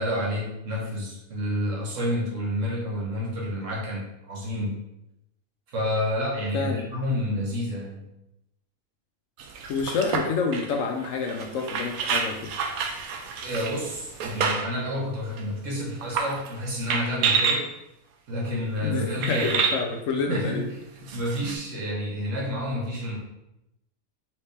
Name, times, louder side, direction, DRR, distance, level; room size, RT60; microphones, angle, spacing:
voice 1, 0.0-4.8 5.7-8.1 13.4-17.7 18.3-19.6 20.3-20.6 21.1-23.2, equal, 60° right, -2 dB, 1.3 m, -29 dB
voice 2, 6.5-6.9 9.7-12.5 18.8-20.6, left 4 dB, 70° left, 3 dB, 0.9 m, -28 dB
sound 1, 9.4-14.8 15.4-15.5 16.0-16.5 16.9-17.6 18.5-18.6 19.2-19.8 21.1-21.5, right 5 dB, 80° right, 1.1 m, -28 dB
4.4 x 3.2 x 3.3 m, 0.85 s
omnidirectional pair, 1.5 m